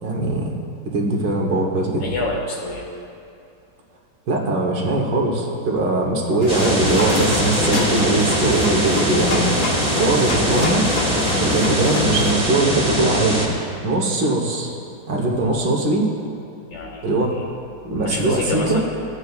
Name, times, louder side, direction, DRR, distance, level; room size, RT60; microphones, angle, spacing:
voice 1, 0.0-0.5 0.9-2.1 4.3-9.5 10.0-10.8 11.4-13.5 13.8-14.7 15.1-16.1 17.0-17.4 17.8-18.8, right 2 dB, 75° right, -1 dB, 1.8 m, -21 dB
voice 2, 2.0-2.8 15.4-15.6 16.7-17.5 18.0-19.0, left 3 dB, 90° left, -2 dB, 2.3 m, -28 dB
sound 1, 6.4-12.3, left 3 dB, 60° left, 0.5 m, -27 dB
sound 2, 6.5-13.5, equal, 5° right, 1.3 m, -22 dB
16.0 x 8.2 x 2.4 m, 2.6 s
omnidirectional pair, 2.0 m